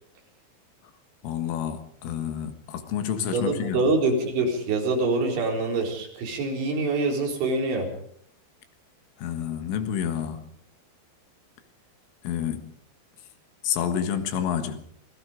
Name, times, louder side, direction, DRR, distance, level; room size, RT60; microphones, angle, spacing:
voice 1, 1.2-3.8 9.2-10.5 12.2-12.7 13.6-14.8, left 9 dB, 85° left, 4.2 m, -29 dB
voice 2, 3.3-7.9, right 3 dB, 75° right, 6.6 m, -25 dB
25.5 x 20.5 x 5.1 m
omnidirectional pair, 5.5 m